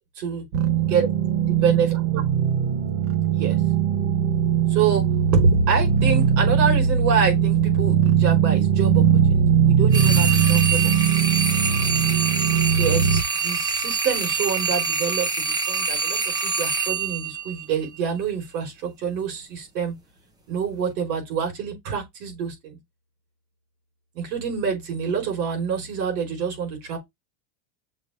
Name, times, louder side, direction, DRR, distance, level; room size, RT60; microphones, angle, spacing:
sound 1, 0.5-13.2, right 8 dB, 50° right, 1.1 m, -20 dB
voice 1, 1.5-2.2 3.3-3.6 4.7-5.0 5.3-9.0 9.3-10.8 11.2-11.3 12.8-15.3 15.7-19.9 20.5-22.8 24.1-27.0, right 6 dB, 75° right, 4.9 m, -26 dB
sound 2, 9.9-18.1, right 5 dB, 10° right, 0.6 m, -25 dB
6.5 x 3.0 x 4.8 m
supercardioid pair, 165°, 49 cm